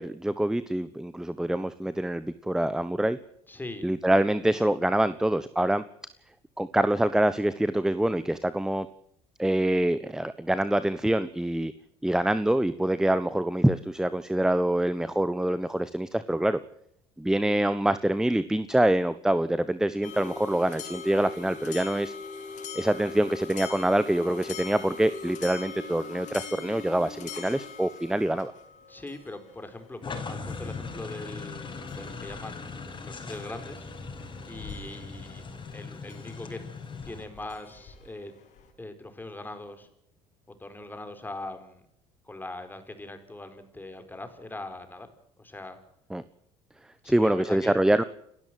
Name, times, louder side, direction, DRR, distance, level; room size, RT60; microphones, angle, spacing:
voice 1, 0.0-3.2 3.8-5.8 6.6-8.9 9.4-11.7 12.0-16.6 17.2-22.1 22.7-28.5 46.1-46.2 47.0-48.0, right 1 dB, 5° right, 14 dB, 1.1 m, -25 dB
voice 2, 3.5-3.9 28.9-33.8 34.5-35.4 35.7-36.6 37.0-38.3 38.8-39.9 40.5-41.8 42.2-45.1 45.4-45.8 47.0-47.8, left 2 dB, 15° left, 8 dB, 4.6 m, -41 dB
sound 1, 20.0-38.7, left 5 dB, 60° left, 6.1 m, -43 dB
sound 2, 30.0-37.3, left 4 dB, 35° left, 5.9 m, -39 dB
29.5 x 12.5 x 7.7 m, 0.73 s
hypercardioid pair, 75°, 14 cm